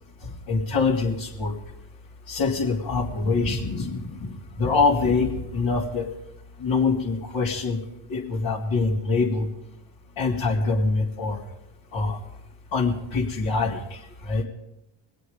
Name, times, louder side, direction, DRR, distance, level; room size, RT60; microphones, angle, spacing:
voice 1, 0.2-1.5 2.3-4.3 4.6-6.0 6.6-7.8 8.1-9.5 10.2-11.4 11.9-12.2 12.7-13.8 14.3-14.4, left 4 dB, 65° left, -6 dB, 3.2 m, -24 dB
23.0 x 8.3 x 5.2 m, 0.85 s
supercardioid pair, 75°, 49 cm